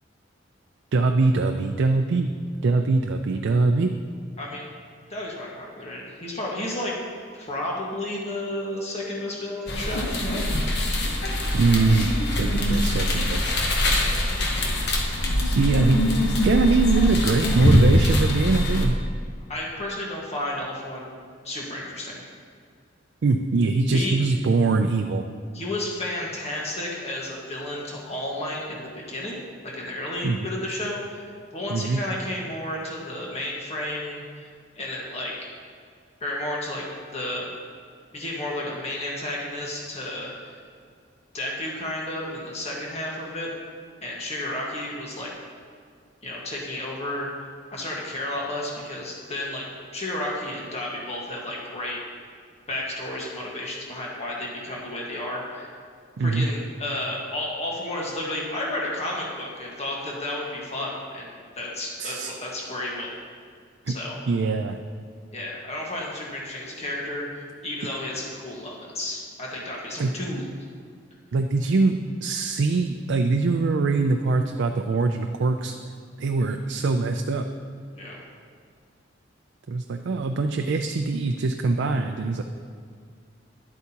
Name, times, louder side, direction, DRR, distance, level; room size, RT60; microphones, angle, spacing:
voice 1, 0.9-2.3 2.6-3.9 11.5-13.6 15.6-16.0 16.4-19.0 23.2-25.3 30.2-30.4 31.7-32.0 56.2-56.5 62.0-62.3 63.9-64.0 64.3-64.8 70.0-70.1 71.3-75.7 76.2-77.5 79.7-82.4, right 3 dB, 65° right, 5 dB, 0.4 m, -23 dB
voice 2, 4.4-4.7 5.1-7.0 7.3-10.5 19.5-21.2 21.4-22.3 23.9-24.2 25.5-29.4 29.6-34.2 34.7-35.5 36.2-37.6 38.1-40.6 41.3-43.5 44.0-45.3 46.2-47.3 47.7-49.6 49.9-52.0 52.7-55.7 56.2-63.1 63.9-64.2 65.3-70.4 77.9-78.2, left 1 dB, 35° left, -3 dB, 1.5 m, -32 dB
sound 1, 9.7-18.8, left 1 dB, 65° left, 1.1 m, -23 dB
11.0 x 8.1 x 2.9 m, 2.2 s
head